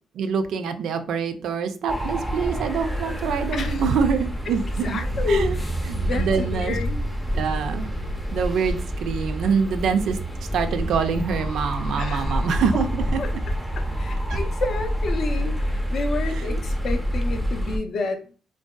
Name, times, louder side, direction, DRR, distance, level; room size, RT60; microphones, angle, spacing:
voice 1, 0.1-5.0 5.3-5.6 5.8-6.8 7.3-7.9 8.3-10.2 10.5-13.2 14.3-14.4 16.3-16.6, right 6 dB, 75° right, 8 dB, 0.3 m, -25 dB
sound 1, 1.9-17.8, equal, ahead, 0.4 m, -27 dB
voice 2, 4.8-5.7 5.9-7.1 12.0-12.3 13.2-13.3 14.0-18.2, left 3 dB, 55° left, 5 dB, 0.5 m, -29 dB
2.6 x 2.2 x 2.2 m, 0.37 s
cardioid pair, 90°, 0 cm